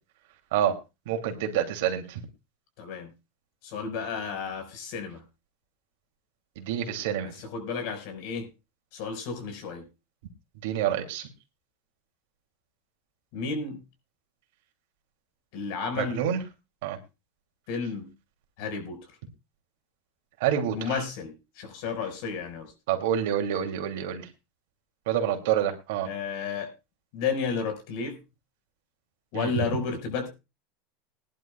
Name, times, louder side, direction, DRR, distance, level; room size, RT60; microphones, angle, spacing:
voice 1, 1.1-2.2 6.6-7.3 10.6-11.3 16.0-16.4 16.8-17.0 20.4-20.8 22.9-24.2 25.1-26.1 29.3-29.5, right 10 dB, 75° right, 4 dB, 2.8 m, -27 dB
voice 2, 2.8-3.1 3.6-5.2 7.2-8.5 8.9-9.9 13.3-13.8 15.5-16.2 17.7-18.1 18.6-19.1 20.7-22.7 26.1-26.7 27.1-28.2 29.3-30.3, left 5 dB, 65° left, 6 dB, 5.2 m, -32 dB
20.5 x 11.0 x 2.4 m, 0.27 s
supercardioid pair, 130°, 0 cm